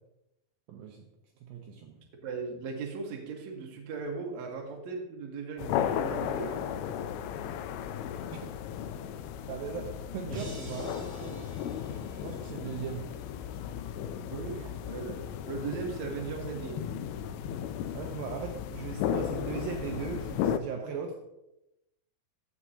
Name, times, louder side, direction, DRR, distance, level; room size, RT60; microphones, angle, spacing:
voice 1, 0.7-1.0 1.5-2.0 8.0-8.5 9.5-11.4 12.2-13.1 14.6-14.7 17.9-21.1, right 6 dB, 75° right, 1 dB, 2.4 m, -38 dB
voice 2, 2.2-6.6 14.2-15.2 15.5-16.9, right 4 dB, 60° right, 1 dB, 2.2 m, -38 dB
sound 1, 5.6-20.6, left 9 dB, 85° left, 2.5 m, -35 dB
sound 2, 10.3-13.4, right 2 dB, 35° right, 1.1 m, -47 dB
15.5 x 6.1 x 2.8 m, 0.88 s
omnidirectional pair, 4.4 m